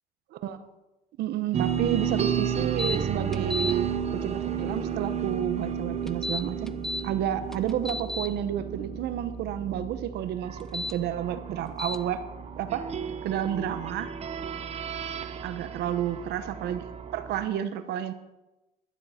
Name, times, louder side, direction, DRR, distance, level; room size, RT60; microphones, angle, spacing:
voice 1, 1.2-6.7 7.0-12.2 12.6-12.9 13.2-14.1 15.4-16.9 17.1-18.1, right 10 dB, 75° right, 11 dB, 1.1 m, -30 dB
sound 1, 1.5-17.5, right 7 dB, 40° right, 1.0 m, -33 dB
sound 2, 2.8-3.0 3.3-3.7 6.1-7.0 7.5-8.3 10.6-10.9 11.8-12.0, left 2 dB, 5° left, 0.5 m, -32 dB
11.5 x 9.6 x 5.8 m, 1.0 s
cardioid pair, 110°, 17 cm